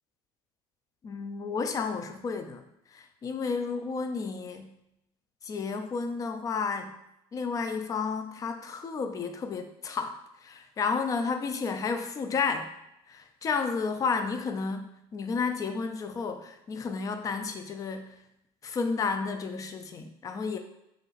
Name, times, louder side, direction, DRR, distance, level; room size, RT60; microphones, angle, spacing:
voice 1, 1.0-2.6 2.9-4.7 5.4-6.9 7.3-10.2 10.4-12.7 13.1-18.2 18.6-20.6, left 5 dB, 30° left, 7 dB, 0.5 m, -32 dB
5.1 x 3.0 x 2.5 m, 0.83 s
cardioid pair, 125°, 12 cm